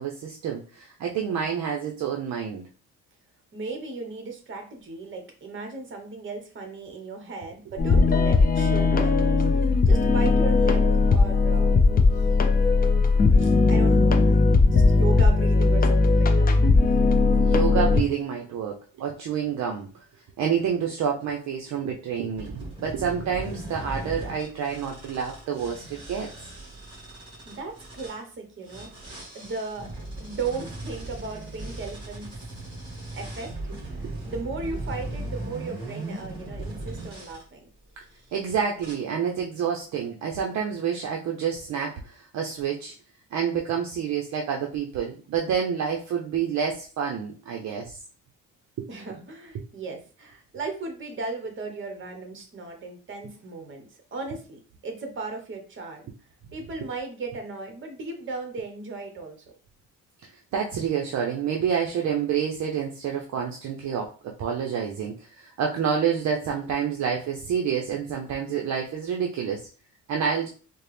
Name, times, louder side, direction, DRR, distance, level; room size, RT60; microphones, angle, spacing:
voice 1, 0.0-2.6 8.0-8.1 17.4-20.0 20.4-26.3 34.0-34.1 36.6-36.7 38.3-42.9 43.3-48.0 48.8-48.9 49.5-49.6 60.5-64.1 64.4-69.7 70.1-70.5, right 7 dB, 55° right, 1 dB, 0.6 m, -28 dB
voice 2, 3.5-9.4 9.9-11.8 12.1-12.9 13.4-16.5 27.4-28.9 29.3-29.9 30.2-32.4 33.1-33.5 33.9-37.7 48.9-56.1 56.5-59.4, right 3 dB, 35° right, 4 dB, 1.0 m, -36 dB
sound 1, 7.8-18.0, left 3 dB, 30° left, 0.4 m, -19 dB
sound 2, 22.4-28.2 28.6-37.4 38.1-38.4 38.8-38.9, right 2 dB, 15° right, 1.9 m, -38 dB
4.2 x 2.0 x 3.3 m, 0.37 s
cardioid pair, 135°, 33 cm